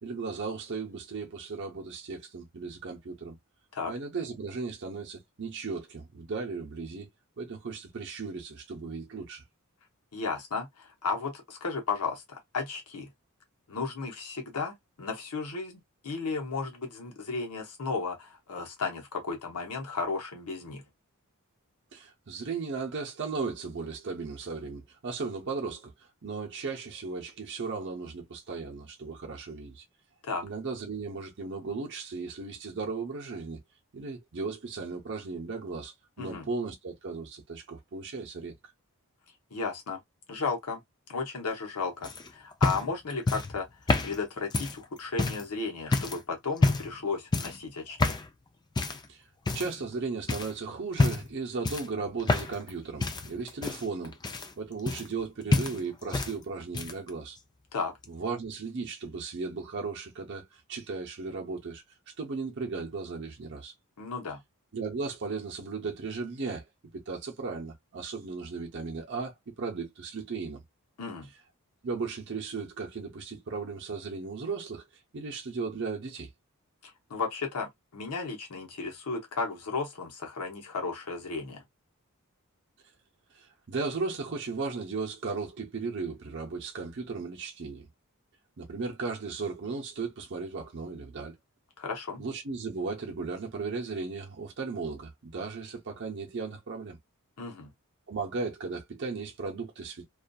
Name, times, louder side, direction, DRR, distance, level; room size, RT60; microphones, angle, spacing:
voice 1, 0.0-3.4 3.9-7.1 7.4-9.4 21.9-25.9 26.2-29.8 30.4-33.6 33.9-38.5 49.1-49.2 49.5-54.2 54.6-57.4 58.1-61.8 62.2-63.7 64.7-66.6 66.9-70.6 71.8-74.8 75.1-76.3 83.3-87.9 88.6-91.4 92.2-97.0 98.1-100.1, right 4 dB, 55° right, 0.6 m, -36 dB
voice 2, 10.1-13.1 13.7-20.8 30.2-30.4 36.2-36.5 39.5-40.0 40.3-40.8 41.1-43.7 44.0-48.2 57.7-57.9 64.0-64.4 71.0-71.3 76.8-81.6 91.8-92.2 97.4-97.7, left 4 dB, 90° left, 0.8 m, -34 dB
sound 1, 42.0-45.5 45.9-46.2 46.6-47.0 47.3-47.6 48.0-48.3 48.8-49.1 49.5-50.0 50.3-50.5 50.9-51.3 51.6-52.7 53.0-55.3 55.5-56.3 56.6-57.1 58.0-58.1, left 3 dB, 20° left, 0.3 m, -28 dB
2.6 x 2.4 x 2.2 m
head